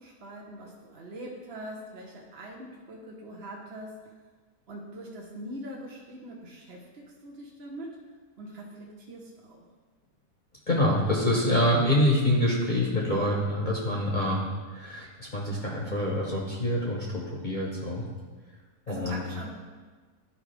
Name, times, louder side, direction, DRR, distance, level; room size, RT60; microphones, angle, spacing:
voice 1, 0.0-4.1 4.7-8.0 8.4-9.7 18.9-19.5, right 1 dB, 50° right, -2 dB, 1.1 m, -42 dB
voice 2, 10.7-18.0 18.9-19.2, left 1 dB, 35° left, -3 dB, 1.0 m, -26 dB
11.5 x 4.8 x 3.3 m, 1.4 s
omnidirectional pair, 1.6 m